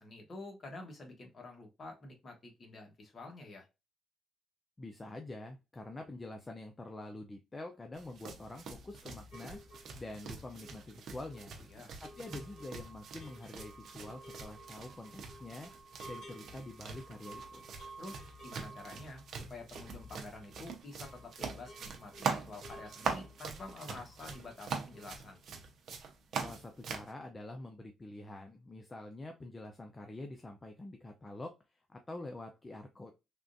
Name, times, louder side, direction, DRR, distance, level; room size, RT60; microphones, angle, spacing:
voice 1, 0.0-3.7 11.7-11.9 18.0-19.2 19.5-25.4, left 2 dB, 40° left, 3 dB, 1.2 m, -48 dB
voice 2, 4.8-9.6 10.0-11.5 12.0-15.7 16.1-17.6 26.3-31.6 31.9-33.1, left 2 dB, 20° left, 4 dB, 0.5 m, -46 dB
sound 1, 8.0-27.1, right 5 dB, 65° right, 0.7 m, -43 dB
sound 2, 9.3-20.6 20.8-24.6 24.8-25.3 25.5-25.6, right 2 dB, 75° left, 1.4 m, -54 dB
3.5 x 2.4 x 2.5 m, 0.25 s
cardioid pair, 90°, 0 cm